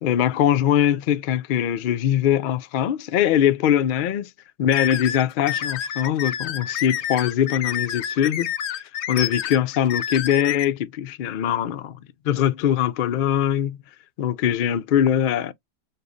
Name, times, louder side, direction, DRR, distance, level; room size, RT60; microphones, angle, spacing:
voice 1, 0.0-4.3 4.6-8.5 9.1-12.0 12.2-13.8 14.2-15.5, left 10 dB, 80° left, 0.4 m, -22 dB
sound 1, 4.7-10.6, left 9 dB, 65° left, 0.8 m, -28 dB
6.5 x 2.4 x 2.5 m
omnidirectional pair, 1.4 m